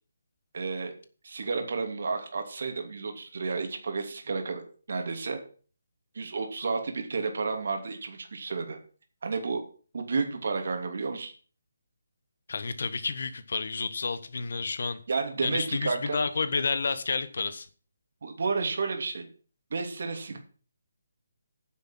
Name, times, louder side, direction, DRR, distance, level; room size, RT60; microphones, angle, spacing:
voice 1, 0.5-0.9 1.2-5.4 6.1-8.8 9.2-9.6 9.9-11.3 15.1-16.2 18.2-19.2 19.7-20.4, right 4 dB, 60° right, 4 dB, 2.8 m, -31 dB
voice 2, 12.5-15.0 15.4-17.7, left 4 dB, 65° left, 12 dB, 1.4 m, -30 dB
9.7 x 6.2 x 7.6 m, 0.41 s
hypercardioid pair, 165°, 0 cm